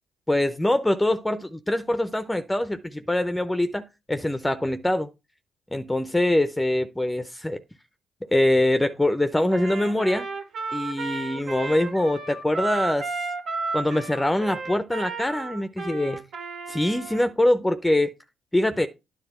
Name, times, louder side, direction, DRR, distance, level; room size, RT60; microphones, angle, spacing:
voice 1, 0.3-5.1 5.7-7.6 8.3-10.3 10.7-13.2 13.7-16.2 16.7-18.1 18.5-18.9, left 1 dB, 10° left, 0.6 m, -24 dB
Trumpet, 9.5-17.3, right 3 dB, 70° right, 1.4 m, -33 dB
9.9 x 3.5 x 5.8 m
supercardioid pair, 55°, 0 cm